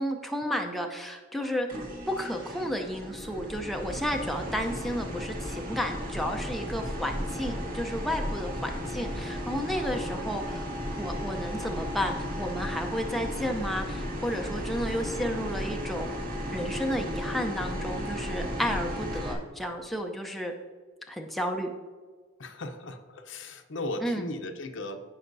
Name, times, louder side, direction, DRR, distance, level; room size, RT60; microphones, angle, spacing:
voice 1, 0.0-1.7 2.1-10.7 10.9-16.2 16.5-20.5 21.1-21.7 24.0-24.3, equal, ahead, 2 dB, 0.5 m, -32 dB
sound 1, 1.7-19.3, equal, 45° right, 1.6 m, -35 dB
voice 2, 22.4-25.0, left 1 dB, 65° left, 6 dB, 0.8 m, -36 dB
15.5 x 5.6 x 2.7 m, 1.5 s
head